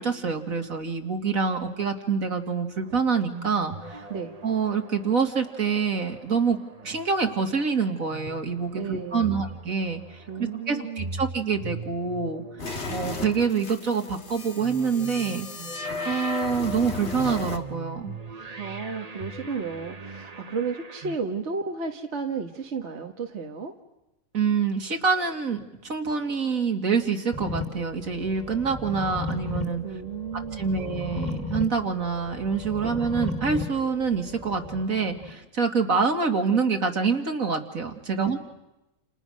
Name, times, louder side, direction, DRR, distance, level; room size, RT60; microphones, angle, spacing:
voice 1, 0.0-4.0 4.4-6.6 6.8-10.2 10.7-12.4 12.9-15.5 16.0-18.1 24.3-29.8 30.6-38.4, right 5 dB, 65° right, 4 dB, 2.9 m, -26 dB
sound 1, 2.8-21.2, right 3 dB, 30° right, 1.2 m, -42 dB
voice 2, 8.7-9.4 10.3-11.2 18.6-23.7 29.8-30.9 32.8-33.0 38.1-38.4, right 5 dB, 50° right, 3 dB, 1.7 m, -33 dB
sound 2, 12.6-17.6, left 3 dB, 50° left, 2.1 m, -35 dB
sound 3, 27.3-35.3, left 2 dB, 30° left, 3.3 m, -35 dB
30.0 x 29.5 x 6.4 m, 0.95 s
omnidirectional pair, 1.5 m